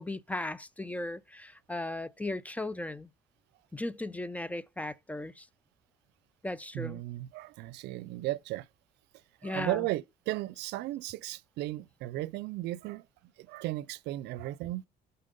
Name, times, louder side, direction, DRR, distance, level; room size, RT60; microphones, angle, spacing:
voice 1, 0.0-3.1 3.7-5.5 6.4-7.0 9.4-9.9, left 1 dB, 10° left, 0.5 m, -37 dB
voice 2, 6.7-8.7 9.4-13.0 13.4-14.8, right 16 dB, 85° right, 0.5 m, -35 dB
7.5 x 5.6 x 5.3 m
cardioid pair, 110°, 17 cm